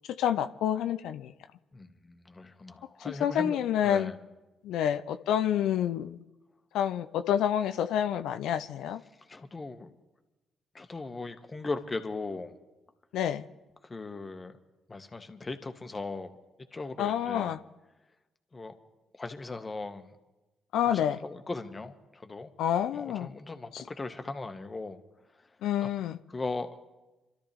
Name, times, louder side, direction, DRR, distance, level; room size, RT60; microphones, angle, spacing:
voice 1, 0.2-1.3 3.2-4.1 4.6-6.1 6.7-9.0 13.1-13.4 17.0-17.6 20.7-21.2 22.6-23.3 25.6-26.2, left 10 dB, 70° left, 10 dB, 0.6 m, -28 dB
voice 2, 1.7-4.3 9.2-9.9 10.7-12.6 13.8-14.5 14.9-16.4 16.7-17.6 18.5-18.7 19.2-20.1 20.9-22.5 22.9-25.0 25.8-25.9 26.3-26.8, left 3 dB, 30° left, 6 dB, 1.8 m, -38 dB
26.5 x 13.0 x 3.6 m, 1.1 s
hypercardioid pair, 45°, 0 cm